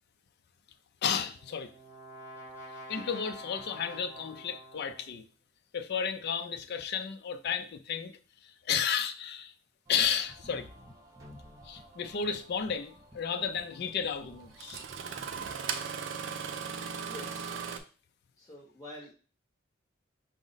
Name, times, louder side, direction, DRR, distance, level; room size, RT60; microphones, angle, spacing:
voice 1, 1.0-1.7 2.9-5.3 5.7-8.1 8.4-9.5 9.9-10.7 11.6-14.8, left 7 dB, 55° left, 0.4 m, -33 dB
Brass instrument, 1.1-5.2, equal, 40° left, 2.3 m, -47 dB
sound 1, 9.9-15.5, equal, 15° right, 0.7 m, -53 dB
Engine starting, 12.2-12.3 13.9-14.0 14.5-17.8, right 6 dB, 65° right, 0.4 m, -37 dB
voice 2, 17.0-17.7 18.4-19.1, left 1 dB, 15° left, 0.7 m, -47 dB
5.0 x 2.0 x 3.9 m
head